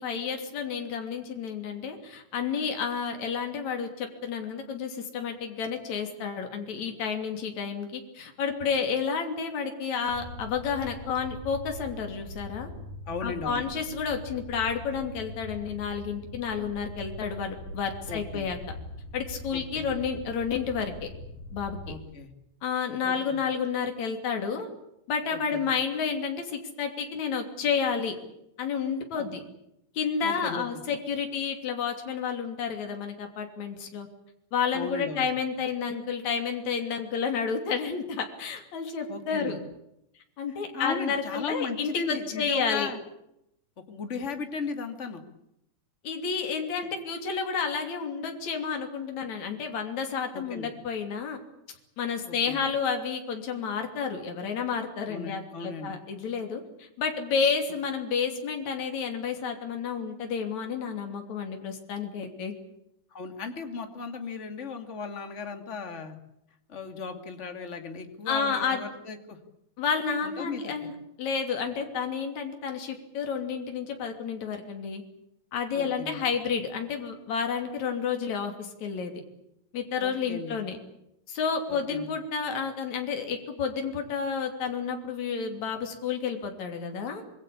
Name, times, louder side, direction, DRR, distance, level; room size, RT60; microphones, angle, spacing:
voice 1, 0.0-12.7 13.2-18.6 19.1-21.1 21.5-21.9 22.6-24.7 25.1-28.2 28.6-29.4 29.9-34.1 34.5-39.6 40.4-42.9 46.0-51.4 52.0-62.5 68.3-68.8 69.8-70.9 71.2-75.0 75.5-79.1 79.7-80.8 81.3-87.2, left 6 dB, 60° left, 4 dB, 4.3 m, -30 dB
sound 1, 10.1-22.0, left 2 dB, 85° left, 5.8 m, -42 dB
voice 2, 13.1-13.6 18.1-18.5 19.5-19.9 21.9-22.3 23.0-23.4 25.3-25.7 29.2-29.3 30.2-30.7 34.7-35.3 39.1-39.6 40.7-43.0 43.9-45.2 50.3-50.7 52.2-52.6 55.1-55.9 63.1-66.2 66.7-69.4 70.2-70.9 75.7-76.2 80.0-80.6 81.7-82.1, left 4 dB, 25° left, 6 dB, 2.5 m, -36 dB
26.0 x 22.0 x 8.6 m, 0.82 s
omnidirectional pair, 3.7 m